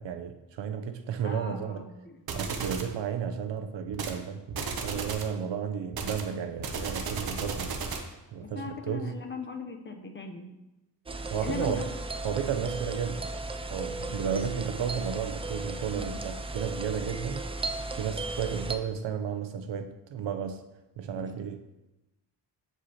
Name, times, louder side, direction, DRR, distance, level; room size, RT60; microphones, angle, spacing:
voice 1, 0.0-1.8 2.3-7.7 8.3-9.1 11.3-11.8 12.2-13.3 13.7-17.5 18.0-20.6 21.0-21.6, right 7 dB, 90° right, 7 dB, 0.6 m, -33 dB
voice 2, 1.2-2.2 8.4-10.5 11.4-11.8 15.9-16.2 21.1-21.3, left 4 dB, 25° left, 4 dB, 0.6 m, -39 dB
sound 1, 2.3-2.9 3.9-4.2 4.5-5.3 5.9-8.1, right 4 dB, 55° right, 0.8 m, -34 dB
sound 2, 11.1-18.8, right 2 dB, 15° right, 0.3 m, -35 dB
7.8 x 4.9 x 2.8 m, 0.98 s
wide cardioid pair, 115°, 43 cm